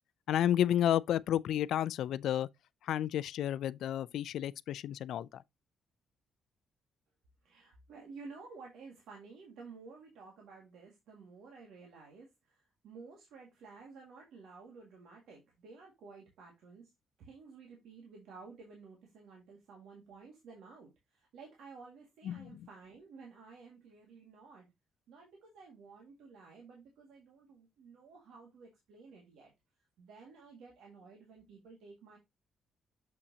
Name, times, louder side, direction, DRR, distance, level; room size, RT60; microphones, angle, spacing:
voice 1, 0.3-2.5 2.8-5.4 22.2-22.7, left 11 dB, 80° left, 0.3 m, -31 dB
voice 2, 7.4-16.9 17.2-24.7 25.1-29.5 30.0-32.2, right 4 dB, 85° right, 1.8 m, -53 dB
6.8 x 5.7 x 2.7 m
cardioid pair, 110°, 0 cm